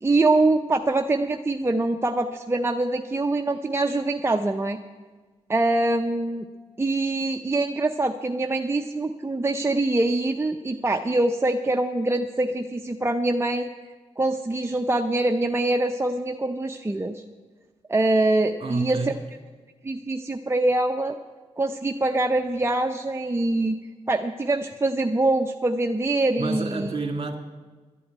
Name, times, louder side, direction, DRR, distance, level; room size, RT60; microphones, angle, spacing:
voice 1, 0.0-4.8 5.5-6.4 6.8-13.7 14.2-17.2 17.9-19.1 19.8-21.2 21.6-23.8 24.1-26.9, right 2 dB, 20° right, 4 dB, 0.6 m, -24 dB
voice 2, 18.6-19.2 26.4-27.4, right 4 dB, 45° right, 5 dB, 1.9 m, -29 dB
11.5 x 8.4 x 9.3 m, 1.4 s
cardioid pair, 70°, 12 cm